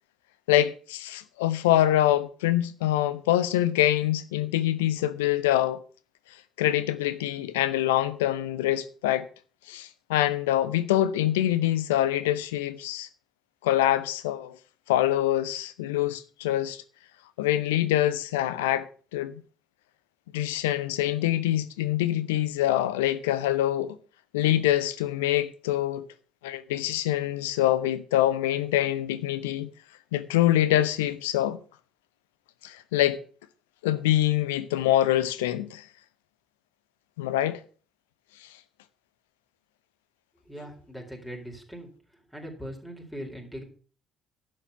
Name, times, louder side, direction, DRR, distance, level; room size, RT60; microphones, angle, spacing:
voice 1, 0.5-5.8 6.6-9.3 9.7-13.1 13.6-14.6 14.9-16.8 17.4-18.9 19.1-19.4 20.3-24.0 24.3-26.0 26.4-29.7 30.1-31.6 32.6-33.2 33.8-35.8 37.2-37.6, left 13 dB, 75° left, 0.7 m, -25 dB
voice 2, 40.5-41.9 42.3-43.6, equal, 5° left, 4.2 m, -40 dB
11.5 x 6.4 x 6.9 m
figure-of-eight pair, 50°, 0 cm